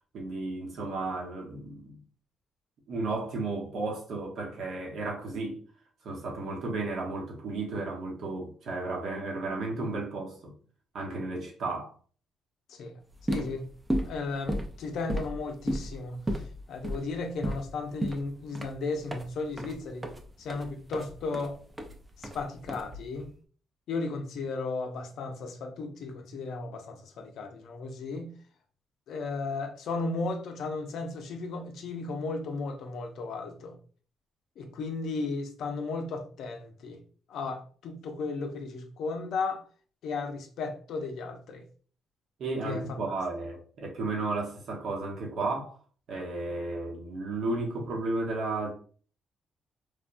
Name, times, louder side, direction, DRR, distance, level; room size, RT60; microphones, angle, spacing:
voice 1, 0.1-2.0 2.9-5.6 6.0-10.5 10.9-11.9 42.4-45.8 46.1-48.7, right 3 dB, 65° right, 0.9 m, -33 dB
sound 1, 13.1-23.3, right 1 dB, 20° right, 0.4 m, -35 dB
voice 2, 13.3-13.7 14.0-16.2 16.7-20.1 20.4-21.6 22.2-23.3 23.9-28.3 29.1-33.7 34.6-37.0 37.3-39.6 40.0-41.6 42.6-43.2, left 3 dB, 75° left, 0.5 m, -35 dB
3.2 x 2.1 x 2.4 m
cardioid pair, 90°, 0 cm